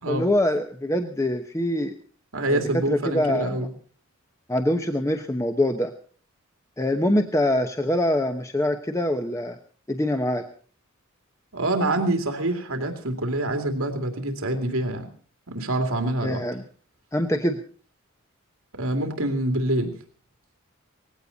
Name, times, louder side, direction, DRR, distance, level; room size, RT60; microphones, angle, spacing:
voice 1, 0.1-1.9 2.5-2.6 2.9-3.6 4.5-5.9 6.8-9.6 9.9-10.4 16.2-16.6 17.1-17.6, left 1 dB, 15° left, 6 dB, 0.9 m, -24 dB
voice 2, 2.3-3.7 11.5-15.1 15.5-16.5 18.7-19.9, right 1 dB, 75° right, 5 dB, 2.6 m, -26 dB
19.0 x 15.5 x 4.0 m, 0.43 s
head